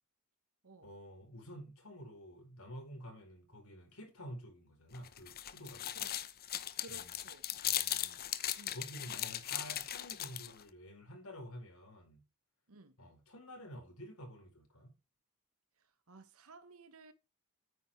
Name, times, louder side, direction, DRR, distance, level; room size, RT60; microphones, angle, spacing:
voice 1, 0.8-6.0 6.9-7.2 7.6-12.2 13.0-14.9, equal, 70° left, 5.0 m, -50 dB
sound 1, 4.9-10.6, left 12 dB, 45° left, 0.9 m, -38 dB
voice 2, 5.9-6.4 6.8-7.5 8.5-8.8 12.7-13.0 15.8-17.1, right 3 dB, 70° right, 1.1 m, -56 dB
9.5 x 9.0 x 3.2 m
head